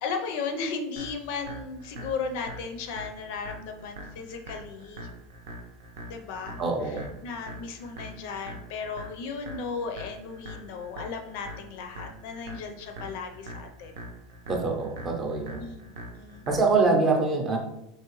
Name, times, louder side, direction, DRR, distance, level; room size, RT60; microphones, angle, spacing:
voice 1, 0.0-5.1 6.0-7.0 7.2-13.9 15.6-15.8 16.2-16.5, left 5 dB, 55° left, 6 dB, 0.5 m, -35 dB
sound 1, 1.0-16.9, equal, 90° right, 0.7 m, -43 dB
voice 2, 6.6-7.1 14.5-15.7 16.5-17.6, right 3 dB, 15° right, 2 dB, 0.5 m, -24 dB
4.5 x 3.2 x 3.0 m, 0.85 s
supercardioid pair, 180°, 0 cm